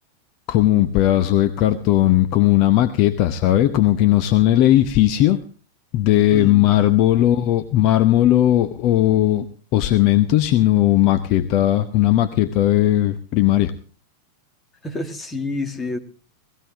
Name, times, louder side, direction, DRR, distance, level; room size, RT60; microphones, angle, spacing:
voice 1, 0.5-5.4 5.9-9.5 9.7-13.7, left 13 dB, 40° left, 10 dB, 0.8 m, -17 dB
voice 2, 6.3-6.7 14.8-16.0, left 2 dB, 15° left, 5 dB, 2.0 m, -28 dB
18.0 x 14.5 x 3.6 m, 0.38 s
figure-of-eight pair, 90°, 0 cm